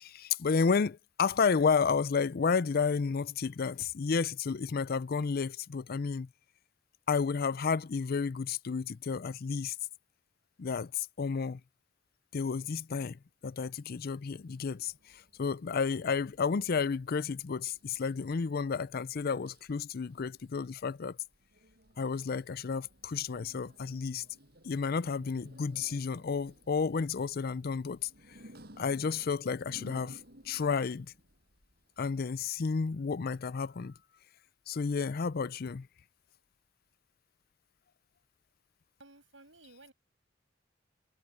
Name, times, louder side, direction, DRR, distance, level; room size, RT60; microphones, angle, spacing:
voice 1, 0.0-6.3 7.1-9.8 10.6-11.6 12.3-21.2 22.0-24.2 24.6-28.1 28.8-30.2 30.4-31.1 32.0-34.0 34.7-35.9, left 5 dB, 50° left, 0.5 m, -31 dB
sound 1, 13.9-32.5, right 1 dB, 55° right, 7.9 m, -59 dB
voice 2, 39.0-39.9, right 2 dB, 80° right, 7.3 m, -55 dB
head